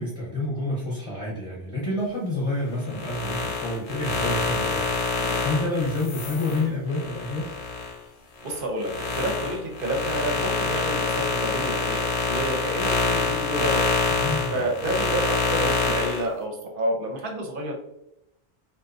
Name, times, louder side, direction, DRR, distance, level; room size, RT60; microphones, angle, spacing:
voice 1, 0.0-7.5 14.1-14.6, left 2 dB, 35° left, -5 dB, 0.5 m, -29 dB
sound 1, 2.8-7.9 8.4-16.2, left 4 dB, 75° left, 0.8 m, -26 dB
voice 2, 8.4-13.9 14.5-17.8, right 1 dB, 60° right, 2 dB, 0.7 m, -29 dB
2.5 x 2.1 x 2.4 m, 0.80 s
omnidirectional pair, 1.1 m